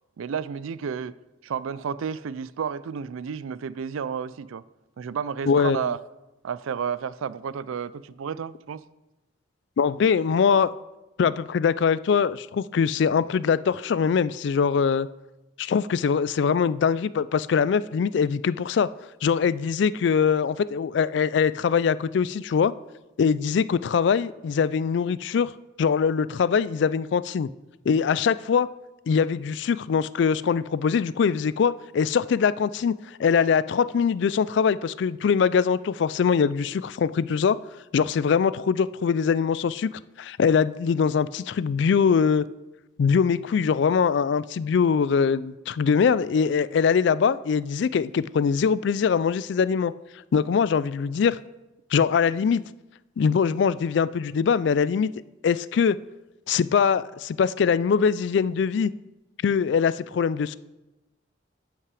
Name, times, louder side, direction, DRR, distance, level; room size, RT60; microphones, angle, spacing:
voice 1, 0.2-1.2 1.4-4.6 5.0-6.0 6.4-8.8, right 7 dB, 85° right, 0.4 m, -31 dB
voice 2, 5.5-5.9 9.8-10.7 11.2-15.1 15.6-18.9 19.2-22.7 23.2-25.5 25.8-27.5 27.9-28.7 29.1-37.6 37.9-39.9 40.2-42.4 43.0-49.9 50.3-51.4 51.9-52.6 53.2-55.1 55.4-56.0 56.5-58.9 59.4-60.6, left 6 dB, 60° left, 0.3 m, -22 dB
12.5 x 5.8 x 4.8 m
head